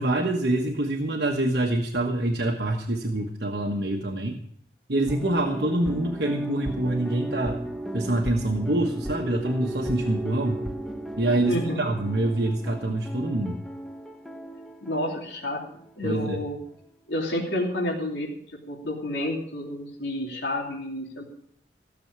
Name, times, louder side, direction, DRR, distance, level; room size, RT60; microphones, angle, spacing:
voice 1, 0.0-4.4 4.9-7.6 7.9-10.7 11.2-13.6 16.0-16.4, right 1 dB, 65° right, 1 dB, 1.3 m, -26 dB
sound 1, 5.1-16.5 16.7-16.8, right 1 dB, ahead, 1.0 m, -35 dB
voice 2, 11.5-11.8 14.8-15.6 16.0-16.6 17.1-18.4 18.7-21.2, left 1 dB, 85° left, -1 dB, 3.1 m, -29 dB
16.0 x 7.1 x 8.8 m, 0.66 s
head